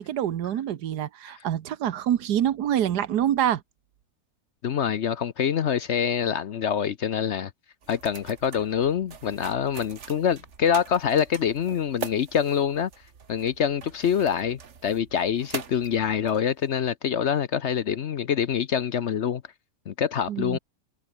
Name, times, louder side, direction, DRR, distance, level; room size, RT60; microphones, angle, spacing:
voice 1, 0.0-3.6 20.3-20.6, right 10 dB, 90° right, 1.5 m, -26 dB
voice 2, 4.6-7.5 7.9-12.9 13.3-19.4 19.9-20.6, left 8 dB, 55° left, 0.9 m, -25 dB
sound 1, 7.8-16.8, right 6 dB, 50° right, 1.6 m, -42 dB
omnidirectional pair, 1.7 m